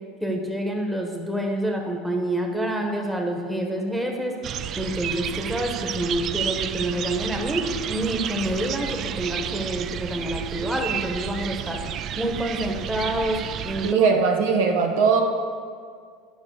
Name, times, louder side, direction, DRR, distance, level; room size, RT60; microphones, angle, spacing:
voice 1, 0.2-4.3 4.7-11.8 12.2-13.9, right 1 dB, 5° right, 1 dB, 1.3 m, -27 dB
sound 1, 4.4-13.9, right 9 dB, 40° right, 0.4 m, -31 dB
voice 2, 13.8-15.2, right 5 dB, 85° right, 3 dB, 1.3 m, -20 dB
10.5 x 5.7 x 6.5 m, 2.1 s
supercardioid pair, 130°, 0 cm